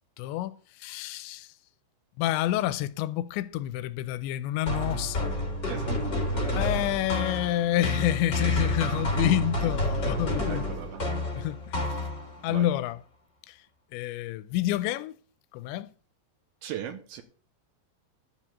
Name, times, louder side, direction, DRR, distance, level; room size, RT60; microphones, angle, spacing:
voice 1, 0.2-1.5 2.2-5.3 6.5-10.6 11.4-11.9 12.4-13.0 13.5-13.6 13.9-15.2 15.5-15.9, left 13 dB, 85° left, 2.9 m, -29 dB
sound 1, 4.7-12.5, left 1 dB, 30° left, 2.5 m, -29 dB
voice 2, 5.7-6.5 10.5-11.0 12.5-12.7 16.6-17.2, right 10 dB, 75° right, 2.5 m, -38 dB
12.5 x 4.8 x 8.3 m
omnidirectional pair, 5.2 m